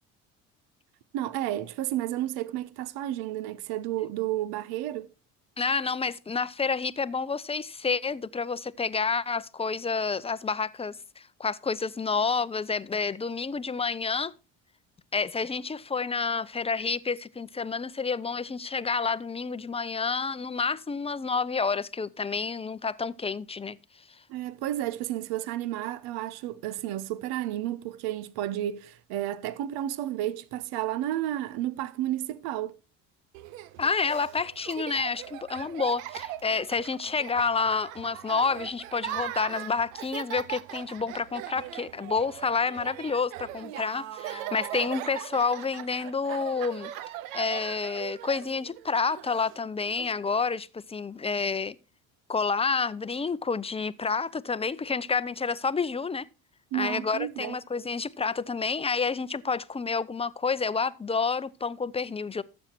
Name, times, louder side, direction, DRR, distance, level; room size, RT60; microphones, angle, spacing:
voice 1, 1.1-5.1 24.3-32.8 56.7-57.6, right 13 dB, 70° right, 0.9 m, -32 dB
voice 2, 5.6-14.3 15.1-23.8 33.8-46.9 47.3-51.8 52.3-56.3 56.7-62.4, left 5 dB, 15° left, 0.6 m, -29 dB
Laughter, 33.3-50.1, right 13 dB, 90° right, 0.8 m, -40 dB
12.5 x 7.6 x 4.4 m
supercardioid pair, 75°, 39 cm